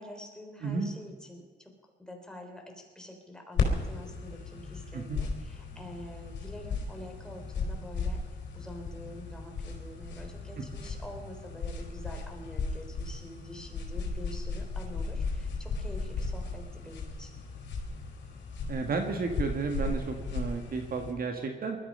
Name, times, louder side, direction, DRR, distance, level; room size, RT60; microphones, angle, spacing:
voice 1, 0.0-1.7 2.0-8.2 8.5-17.4, left 1 dB, 5° left, 2 dB, 3.7 m, -46 dB
sound 1, 3.6-21.1, left 4 dB, 65° left, 3.9 m, -36 dB
voice 2, 18.7-21.8, right 4 dB, 50° right, 4 dB, 1.8 m, -32 dB
20.0 x 13.0 x 5.5 m, 1.4 s
cardioid pair, 90°, 20 cm